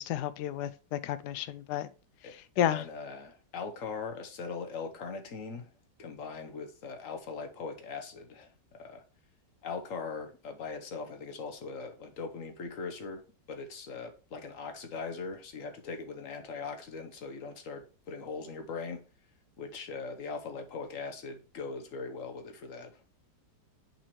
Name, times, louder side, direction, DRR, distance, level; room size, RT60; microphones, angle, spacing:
voice 1, 0.0-1.9 2.6-2.8, left 11 dB, 75° left, 1.0 m, -31 dB
voice 2, 2.2-5.7 6.0-9.0 9.6-19.0 19.6-23.0, left 4 dB, 50° left, 1.2 m, -40 dB
8.7 x 4.4 x 3.1 m
omnidirectional pair, 2.0 m